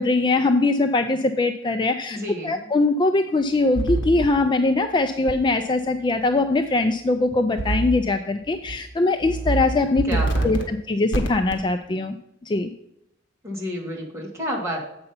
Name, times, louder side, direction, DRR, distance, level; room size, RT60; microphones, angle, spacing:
voice 1, 0.0-2.2 2.4-10.0 10.4-12.2 12.4-12.7, left 2 dB, 25° left, 7 dB, 0.4 m, -21 dB
voice 2, 2.1-2.7 10.0-10.5 13.4-14.8, equal, 15° right, -2 dB, 2.0 m, -30 dB
sound 1, 3.8-4.3 5.3-5.4 7.6-8.0 8.5-8.8 9.2-9.6 10.0-10.6 11.1-11.6, right 2 dB, 60° left, 1.4 m, -24 dB
7.8 x 5.5 x 5.6 m, 0.83 s
head